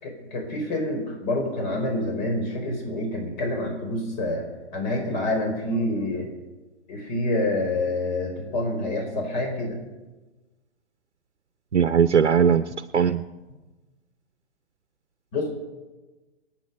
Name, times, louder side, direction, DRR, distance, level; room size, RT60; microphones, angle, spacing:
voice 1, 0.0-4.4 4.7-6.3 6.9-9.8 15.3-15.5, left 1 dB, 40° left, 2 dB, 4.9 m, -27 dB
voice 2, 11.7-12.6 12.9-13.2, right 7 dB, 80° right, 11 dB, 0.8 m, -19 dB
28.0 x 9.3 x 5.5 m, 1.2 s
figure-of-eight pair, 125°, 34 cm